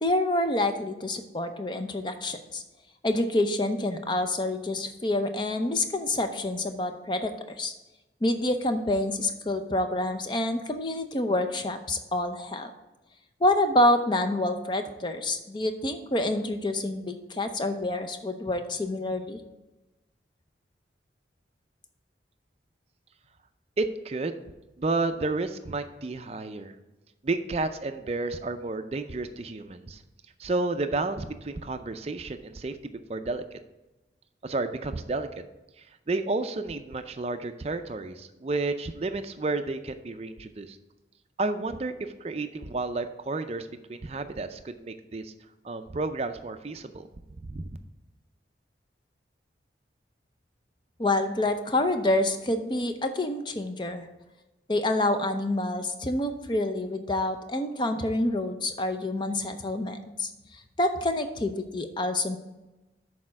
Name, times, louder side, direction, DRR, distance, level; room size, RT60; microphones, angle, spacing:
voice 1, 0.0-2.6 3.0-7.7 8.2-12.7 13.4-19.4 51.0-54.1 54.7-62.4, left 1 dB, 25° left, 7 dB, 0.5 m, -27 dB
voice 2, 23.8-24.5 24.8-26.7 27.2-30.0 30.4-33.4 34.4-35.3 36.1-40.8 41.4-45.3 45.6-47.0 47.4-47.7, right 3 dB, 35° right, 8 dB, 0.4 m, -31 dB
6.6 x 4.2 x 5.9 m, 1.0 s
head